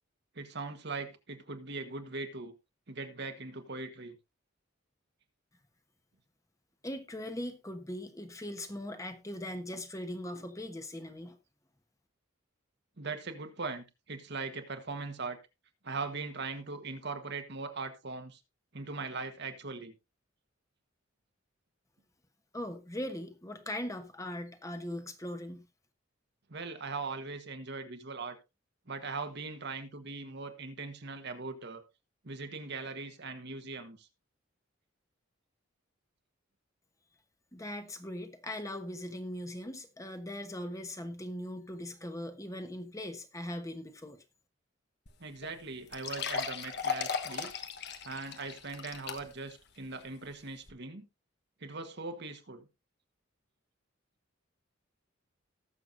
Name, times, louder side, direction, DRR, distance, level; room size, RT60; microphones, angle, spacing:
voice 1, 0.3-2.5 2.9-4.1 13.0-15.4 15.8-18.4 18.7-19.9 26.5-28.4 28.9-31.8 32.2-34.1 45.2-47.5 48.0-51.0 51.6-52.7, right 3 dB, 60° right, 1.4 m, -40 dB
voice 2, 6.8-11.4 22.5-25.7 37.5-44.2, left 1 dB, 15° left, 1.2 m, -40 dB
sound 1, 45.1-45.2 45.4-45.5 45.9-49.5 50.0-50.1 50.7-50.8, left 6 dB, 60° left, 1.2 m, -36 dB
19.0 x 6.8 x 2.6 m
head